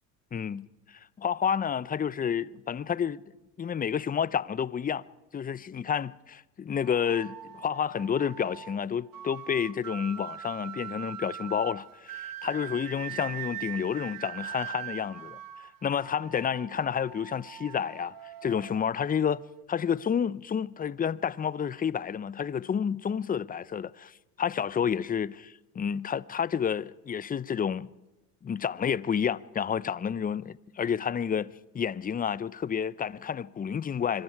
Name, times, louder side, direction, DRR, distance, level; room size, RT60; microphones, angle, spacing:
voice 1, 0.3-3.2 3.6-5.0 5.3-18.2 18.4-19.4 19.7-27.9 28.4-31.5 31.7-34.2, left 7 dB, 20° left, 0.6 m, -30 dB
sound 1, 6.8-19.6, right 12 dB, 45° right, 1.5 m, -42 dB
25.5 x 22.5 x 4.7 m
hypercardioid pair, 80°, 48 cm